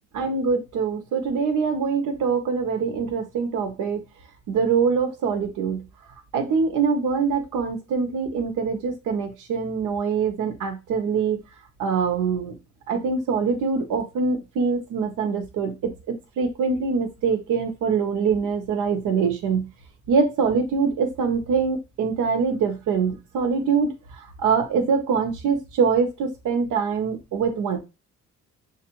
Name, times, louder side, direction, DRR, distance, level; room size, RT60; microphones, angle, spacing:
voice 1, 0.1-4.0 4.5-5.8 6.3-11.4 11.8-12.5 12.9-15.9 16.4-19.7 20.1-23.9 24.4-27.8, right 5 dB, 80° right, 5 dB, 0.9 m, -24 dB
6.5 x 2.5 x 2.9 m, 0.27 s
cardioid pair, 90°, 30 cm